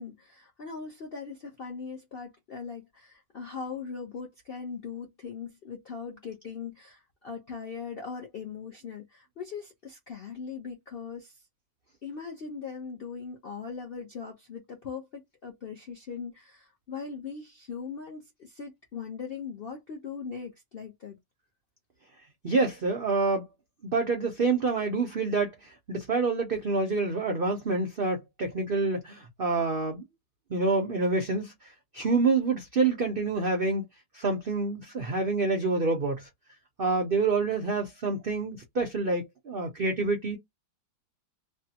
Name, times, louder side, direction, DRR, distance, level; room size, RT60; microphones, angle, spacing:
voice 1, 0.0-11.4 12.0-21.2, left 5 dB, 65° left, 0.5 m, -40 dB
voice 2, 22.4-23.4 23.8-25.5 25.9-30.0 30.5-31.5 31.9-33.8 34.1-36.3 36.8-40.4, right 3 dB, 85° right, 0.4 m, -27 dB
3.3 x 2.0 x 2.7 m
omnidirectional pair, 1.9 m